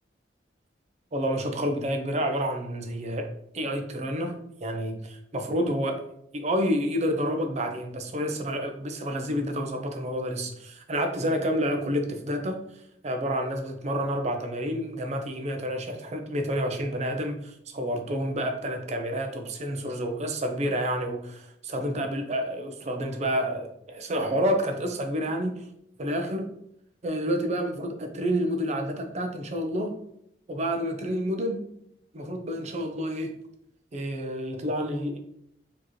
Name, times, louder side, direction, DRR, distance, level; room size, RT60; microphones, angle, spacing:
voice 1, 1.1-3.3 3.5-6.0 6.3-12.6 13.0-25.6 26.0-26.5 27.0-29.9 30.5-31.6 32.1-33.3 33.9-35.2, equal, 40° right, 5 dB, 0.5 m, -29 dB
4.4 x 2.8 x 3.0 m, 0.75 s
head